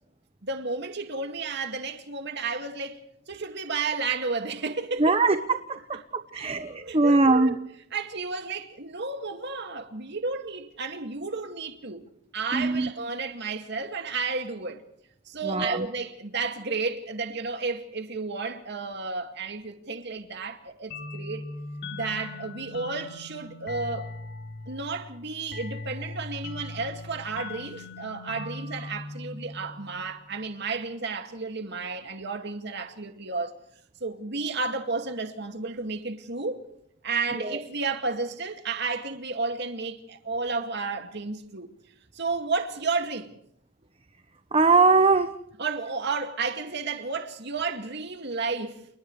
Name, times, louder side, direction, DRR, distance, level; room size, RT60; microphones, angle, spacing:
voice 1, 0.4-3.0 3.3-5.3 6.3-7.6 7.9-12.1 12.3-14.8 15.3-21.5 21.9-24.1 24.7-33.6 34.0-36.6 37.0-41.7 42.1-43.4 45.6-48.9, right 4 dB, 60° right, 2.3 m, -32 dB
voice 2, 5.0-6.0 6.3-7.6 12.5-12.9 15.4-15.9 37.4-37.6 44.5-45.3, right 3 dB, 30° right, 1.0 m, -21 dB
sound 1, 20.9-30.3, left 2 dB, 60° left, 3.3 m, -39 dB
30.0 x 29.5 x 3.3 m
head